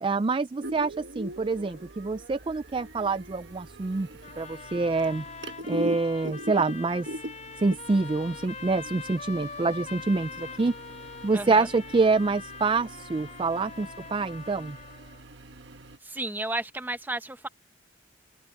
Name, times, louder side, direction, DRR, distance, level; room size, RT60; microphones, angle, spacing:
voice 1, 0.0-4.1 4.4-5.2 5.7-7.1 7.6-10.7 11.2-14.8, right 3 dB, 25° right, 0.4 m, -26 dB
sound 1, 0.6-16.0, equal, 65° right, 1.4 m, -41 dB
sound 2, 4.2-15.2, left 5 dB, 35° left, 5.0 m, -43 dB
voice 2, 11.3-11.7 16.0-17.5, right 2 dB, 10° right, 1.1 m, -33 dB
open air
head